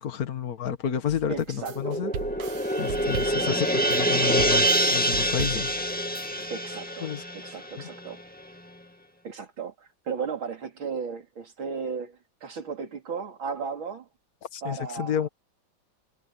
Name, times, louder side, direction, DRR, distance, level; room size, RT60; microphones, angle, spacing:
voice 1, 0.0-2.1 2.8-5.8 7.0-7.2 14.5-15.3, left 8 dB, 50° left, 2.0 m, -30 dB
sound 1, 1.1-6.5, right 9 dB, 65° right, 1.7 m, -38 dB
voice 2, 1.3-2.0 3.2-3.6 6.5-8.2 9.2-14.1 14.6-15.3, right 5 dB, 85° right, 3.9 m, -35 dB
sound 2, 1.6-8.2, right 1 dB, 5° left, 1.9 m, -26 dB
omnidirectional pair, 2.1 m